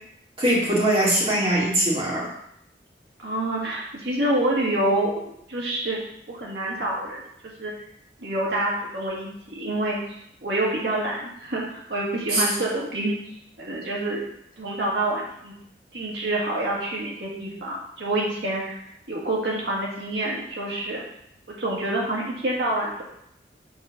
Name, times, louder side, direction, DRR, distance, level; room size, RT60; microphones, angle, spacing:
voice 1, 0.4-2.3 12.3-12.5, right 1 dB, 30° right, -5 dB, 2.2 m, -21 dB
voice 2, 3.2-6.0 6.3-7.2 7.6-7.7 8.2-10.0 10.4-13.2 13.6-14.2 14.6-15.5 15.9-18.8 19.1-21.0 21.5-23.0, right 1 dB, 80° right, -4 dB, 2.1 m, -27 dB
6.9 x 3.8 x 5.8 m, 0.75 s
head